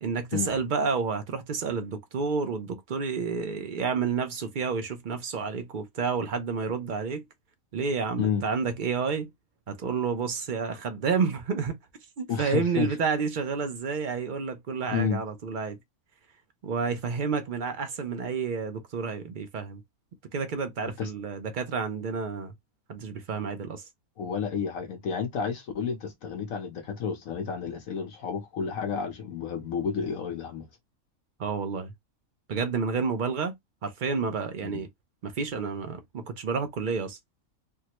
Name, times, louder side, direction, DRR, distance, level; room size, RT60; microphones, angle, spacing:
voice 1, 0.0-7.2 7.7-9.3 9.7-11.8 12.2-15.8 16.6-19.8 20.3-22.5 22.9-23.8 31.4-31.9 32.5-33.6 33.8-34.9 35.2-37.2, right 5 dB, 60° right, 0.5 m, -30 dB
voice 2, 12.3-12.9 14.9-15.2 21.0-21.1 24.2-30.7 34.6-34.8, left 6 dB, 70° left, 1.1 m, -31 dB
3.5 x 2.0 x 2.9 m
omnidirectional pair, 1.5 m